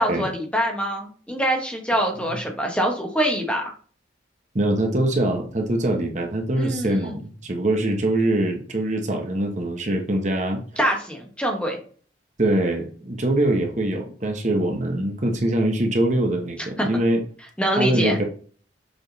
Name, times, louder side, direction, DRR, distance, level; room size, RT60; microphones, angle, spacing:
voice 1, 0.0-3.7 6.6-7.2 10.8-11.8 16.8-16.9 17.6-18.2, equal, 5° left, 1 dB, 1.2 m, -24 dB
voice 2, 4.5-10.6 12.4-17.2 17.8-18.2, right 1 dB, 40° right, 3 dB, 1.1 m, -23 dB
7.1 x 3.7 x 4.0 m, 0.43 s
head